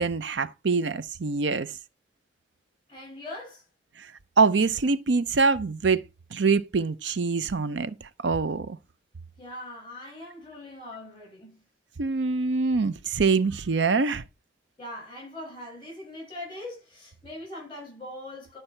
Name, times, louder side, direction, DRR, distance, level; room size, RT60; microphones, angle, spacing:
voice 1, 0.0-1.7 4.4-6.0 6.3-7.9 8.2-8.8 12.0-14.2, right 4 dB, 80° right, 0.6 m, -24 dB
voice 2, 2.9-3.6 9.4-11.5 14.8-18.6, left 1 dB, 25° left, 6.6 m, -41 dB
11.5 x 5.5 x 4.4 m
head